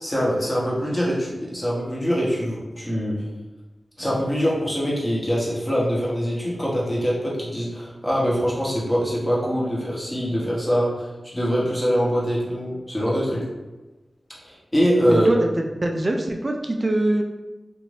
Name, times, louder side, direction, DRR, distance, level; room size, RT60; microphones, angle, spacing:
voice 1, 0.0-3.1 4.0-11.1 11.3-13.4 14.4-15.3, equal, 20° left, -6 dB, 1.0 m, -23 dB
voice 2, 15.1-17.2, right 1 dB, 35° right, 2 dB, 0.3 m, -23 dB
2.6 x 2.5 x 3.2 m, 1.1 s
wide cardioid pair, 60°, 0 cm